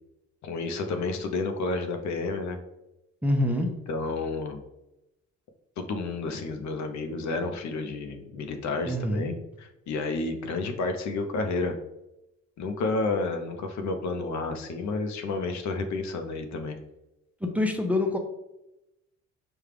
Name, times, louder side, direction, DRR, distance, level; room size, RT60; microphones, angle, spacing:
voice 1, 0.4-2.6 3.6-4.6 5.8-11.8 12.6-16.8, left 3 dB, 65° left, 6 dB, 0.6 m, -31 dB
voice 2, 3.2-3.7 8.8-9.3 17.4-18.2, left 1 dB, 5° right, 3 dB, 0.5 m, -25 dB
5.0 x 2.3 x 3.3 m, 0.90 s
cardioid pair, 90°, 30 cm